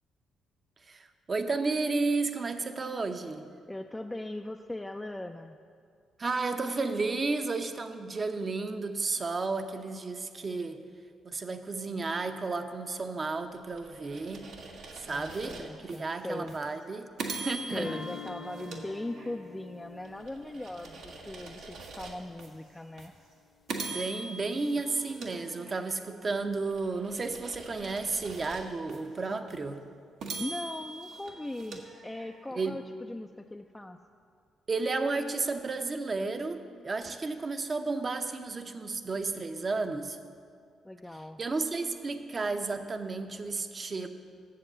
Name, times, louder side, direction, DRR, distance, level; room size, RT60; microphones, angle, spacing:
voice 1, 0.8-3.5 6.2-10.8 11.2-14.5 14.9-18.0 23.8-29.9 32.5-32.8 34.7-40.2 41.4-44.1, right 3 dB, 40° right, 8 dB, 0.7 m, -32 dB
voice 2, 3.7-5.6 15.0-16.6 17.7-23.1 30.4-34.0 40.8-41.4, left 1 dB, 15° left, 4 dB, 0.4 m, -39 dB
sound 1, 13.5-16.0 16.5-16.6 17.2-19.6 20.0-22.5 23.0-23.1 23.7-26.1 26.5-29.0 29.5-29.6 30.2-32.5, right 3 dB, 75° right, 1.2 m, -42 dB
sound 2, 17.7-22.6, left 5 dB, 50° left, 0.7 m, -47 dB
7.7 x 7.2 x 6.8 m, 2.2 s
supercardioid pair, 55°, 0 cm